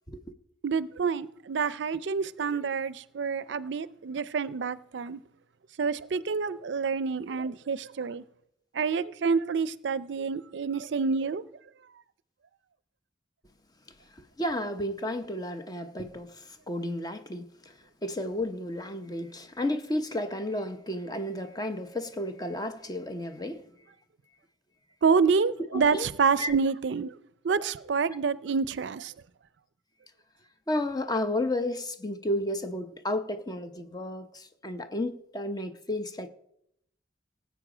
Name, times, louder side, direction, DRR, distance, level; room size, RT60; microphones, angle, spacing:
voice 1, 0.6-5.2 5.8-8.2 8.7-11.4 25.0-27.1 27.4-29.1, right 5 dB, 70° right, 0.5 m, -28 dB
voice 2, 14.1-17.7 18.0-23.7 25.7-26.1 26.4-26.5 30.7-36.3, left 1 dB, 20° left, 0.8 m, -32 dB
18.5 x 8.0 x 5.0 m
head